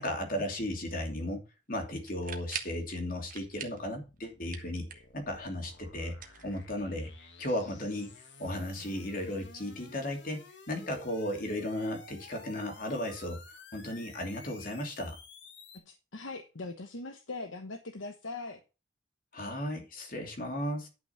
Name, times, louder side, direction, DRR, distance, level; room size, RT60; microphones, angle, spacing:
voice 1, 0.0-1.4 1.7-8.1 8.4-10.4 10.7-13.4 13.7-15.2 19.3-20.9, left 1 dB, 45° left, 3 dB, 2.9 m, -35 dB
sound 1, 2.0-2.8 3.3-3.9 4.2-5.2 6.1-7.0, right 8 dB, 45° right, 1.4 m, -43 dB
sound 2, 4.0-15.8, left 3 dB, 70° left, 1.9 m, -53 dB
voice 2, 15.7-18.6, left 3 dB, 90° left, 6 dB, 1.1 m, -41 dB
11.0 x 6.0 x 5.7 m, 0.31 s
head